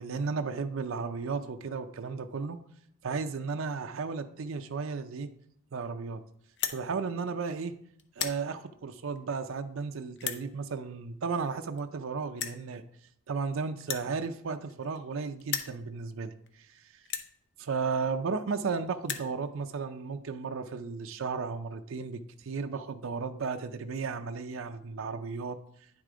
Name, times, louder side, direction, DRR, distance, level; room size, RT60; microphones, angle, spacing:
voice 1, 0.0-2.6 3.0-5.3 5.7-6.2 6.7-7.8 8.2-12.8 13.3-17.0 17.6-25.6, right 4 dB, 70° right, 8 dB, 0.5 m, -34 dB
sound 1, 6.5-6.8 7.5-7.7 8.0-8.4 9.2-9.3 10.2-10.4 11.5-11.6 11.8-11.9 12.4-12.6 13.8-15.1 15.4-15.8 16.5-16.6 17.0-17.3 18.2-18.3 18.5-18.6 18.9-19.3, left 8 dB, 55° left, 0.7 m, -35 dB
9.9 x 4.8 x 3.8 m, 0.69 s
head